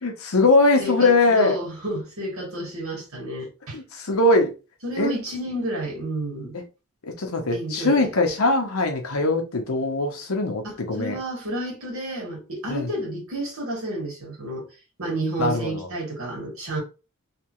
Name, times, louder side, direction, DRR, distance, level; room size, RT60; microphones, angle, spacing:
voice 1, 0.0-1.6 3.7-4.5 5.0-5.1 6.5-6.6 7.0-11.2 12.7-12.9 15.4-15.9, left 2 dB, 85° left, 0.9 m, -21 dB
voice 2, 0.7-3.8 4.8-6.6 7.5-8.1 10.6-14.7 15.0-16.8, right 1 dB, 80° right, 1.9 m, -30 dB
3.4 x 2.9 x 3.0 m
head